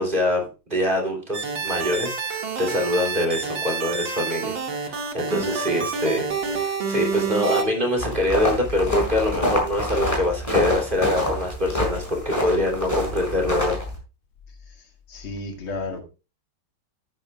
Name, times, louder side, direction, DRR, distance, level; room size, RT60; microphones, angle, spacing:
voice 1, 0.0-13.8, left 1 dB, 25° right, 1 dB, 3.3 m, -24 dB
sound 1, 1.3-7.6, right 5 dB, 65° right, 2.7 m, -28 dB
sound 2, 8.0-14.0, left 1 dB, 15° left, 4.7 m, -26 dB
voice 2, 15.1-16.0, left 2 dB, 75° left, 3 dB, 2.9 m, -32 dB
13.0 x 9.9 x 2.4 m, 0.30 s
omnidirectional pair, 2.3 m